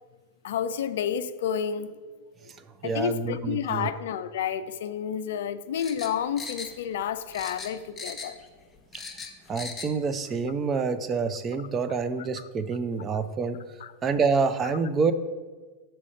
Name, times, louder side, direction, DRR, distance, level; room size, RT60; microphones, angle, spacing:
voice 1, 0.4-1.9 2.8-8.4 13.8-13.9, left 8 dB, 60° left, 12 dB, 0.3 m, -30 dB
voice 2, 2.8-3.9 9.5-13.6 14.0-15.1, right 5 dB, 25° right, 11 dB, 0.5 m, -27 dB
sound 1, 5.7-7.1 7.3-8.5 8.7-9.9 10.2-10.3, left 4 dB, 15° left, 0.8 m, -39 dB
6.2 x 4.5 x 6.4 m, 1.4 s
figure-of-eight pair, 90°, 0 cm